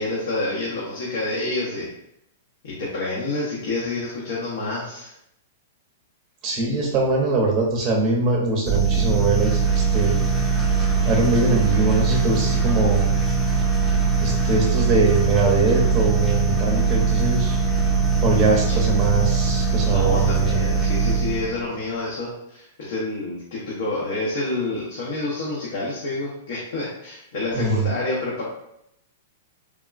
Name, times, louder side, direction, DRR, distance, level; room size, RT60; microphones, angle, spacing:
voice 1, 0.0-1.9 2.6-5.1 18.7-18.8 19.9-28.4, left 2 dB, 70° left, -6 dB, 0.8 m, -28 dB
voice 2, 6.4-10.2 11.0-13.1 14.2-17.6 18.2-20.6 27.5-27.9, right 3 dB, 30° right, -1 dB, 0.6 m, -22 dB
sound 1, 8.6-21.6, right 5 dB, 5° left, 0.7 m, -21 dB
3.4 x 2.2 x 2.4 m, 0.79 s
hypercardioid pair, 135°, 0 cm